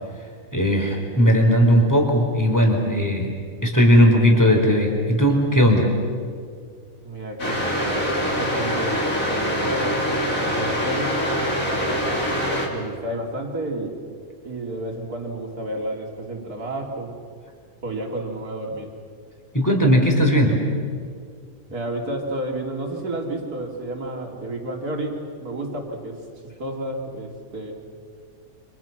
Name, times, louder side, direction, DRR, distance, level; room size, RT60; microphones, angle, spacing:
voice 1, 0.5-3.3 3.6-5.9 19.5-20.6, equal, 10° left, 1 dB, 4.4 m, -17 dB
voice 2, 7.0-9.0 9.3-10.0 10.4-11.2 11.7-12.1 12.7-14.0 14.4-17.2 17.8-18.9 21.7-26.2 26.6-27.8, right 1 dB, 80° right, 1 dB, 3.8 m, -31 dB
sound 1, 7.4-12.7, equal, 60° left, 3.9 m, -24 dB
29.5 x 27.0 x 6.1 m, 2.1 s
omnidirectional pair, 1.6 m